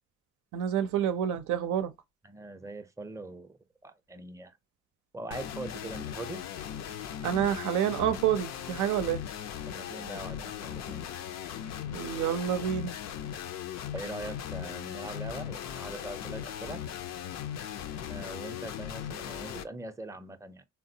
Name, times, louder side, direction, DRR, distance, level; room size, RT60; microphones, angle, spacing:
voice 1, 0.5-1.9 7.2-9.2 11.9-12.9, right 9 dB, 90° right, 0.5 m, -28 dB
voice 2, 2.2-4.6 5.1-6.4 9.7-11.0 13.9-16.9 18.1-20.6, right 2 dB, 10° right, 0.5 m, -42 dB
sound 1, 5.3-19.6, left 9 dB, 65° left, 0.5 m, -38 dB
3.7 x 2.2 x 2.7 m
cardioid pair, 85°, 29 cm